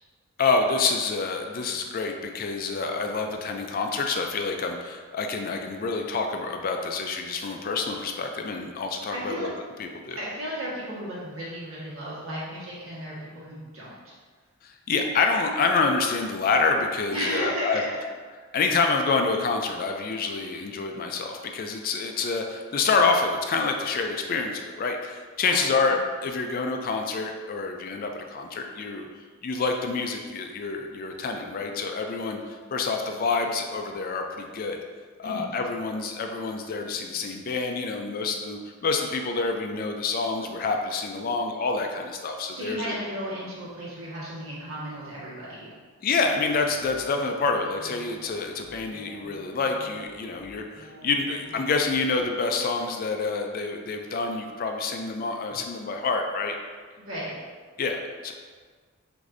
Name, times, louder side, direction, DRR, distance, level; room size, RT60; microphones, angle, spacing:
voice 1, 0.4-9.5 9.8-10.2 14.6-17.8 18.5-29.1 29.4-34.8 35.2-43.0 46.0-56.6 57.8-58.3, left 4 dB, 40° left, 4 dB, 0.3 m, -27 dB
voice 2, 9.1-9.5 10.2-14.1 17.1-17.9 25.4-26.0 35.2-35.5 42.5-45.7 57.0-57.3, equal, 65° right, -7 dB, 1.4 m, -34 dB
sound 1, 46.2-52.2, right 1 dB, 25° left, 0.8 m, -49 dB
6.2 x 2.6 x 2.5 m, 1.5 s
head